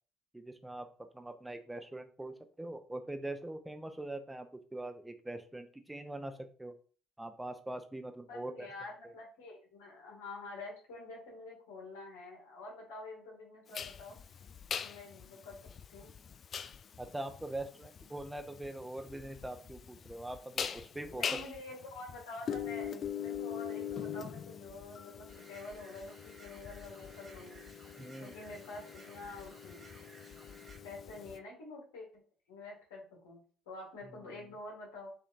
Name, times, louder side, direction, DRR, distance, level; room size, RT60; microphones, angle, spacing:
voice 1, 0.3-6.7 7.2-8.7 17.0-21.4 28.0-28.3, right 1 dB, 10° right, 7 dB, 0.8 m, -43 dB
voice 2, 8.3-14.2 14.8-15.6 15.9-16.1 21.1-27.7 28.2-29.9 30.8-32.2 32.5-33.4 33.7-35.1, left 2 dB, 90° left, -3 dB, 1.8 m, -47 dB
sound 1, 13.7-31.4, left 8 dB, 50° left, 0.3 m, -42 dB
sound 2, 25.3-30.8, right 3 dB, 40° right, 1.1 m, -58 dB
6.5 x 2.8 x 2.5 m, 0.41 s
supercardioid pair, 65°, 0 cm